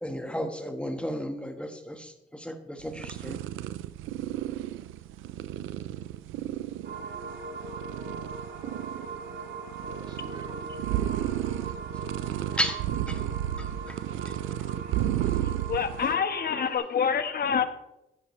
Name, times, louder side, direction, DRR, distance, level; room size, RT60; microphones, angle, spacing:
voice 1, 0.0-3.4 12.5-13.2 14.2-14.3, equal, 5° left, 5 dB, 1.4 m, -33 dB
sound 1, 2.8-16.2, right 12 dB, 90° right, 0.6 m, -33 dB
sound 2, 6.8-16.8, right 4 dB, 65° right, 2.9 m, -40 dB
voice 2, 9.5-11.4 14.1-14.9, right 1 dB, 25° right, -1 dB, 3.6 m, -51 dB
voice 3, 15.7-17.6, left 7 dB, 50° left, 9 dB, 1.3 m, -26 dB
14.5 x 12.0 x 3.2 m, 0.90 s
cardioid pair, 90°, 20 cm